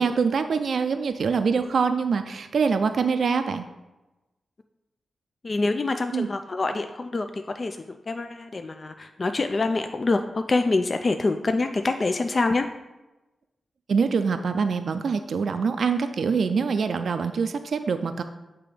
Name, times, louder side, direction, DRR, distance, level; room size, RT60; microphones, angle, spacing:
voice 1, 0.0-3.7 6.1-6.3 13.9-18.2, right 5 dB, 70° right, 8 dB, 0.4 m, -24 dB
voice 2, 5.4-12.7, left 3 dB, 45° left, 7 dB, 0.3 m, -26 dB
6.7 x 2.9 x 4.9 m, 1.0 s
cardioid pair, 55°, 0 cm